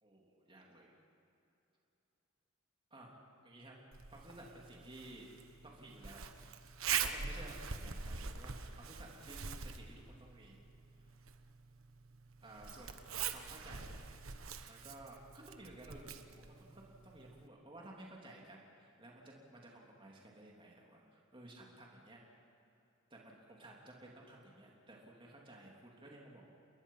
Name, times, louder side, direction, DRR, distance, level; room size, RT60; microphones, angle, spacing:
voice 1, 0.0-0.9 2.9-3.1 3.4-3.8 4.1-5.3 5.6-6.3 6.9-10.6 12.4-14.0 14.7-22.2 23.1-26.5, right 1 dB, 25° right, -2 dB, 3.4 m, -55 dB
Zipper (clothing), 3.9-17.5, right 7 dB, 85° right, 1.3 m, -44 dB
30.0 x 21.5 x 5.8 m, 2.8 s
head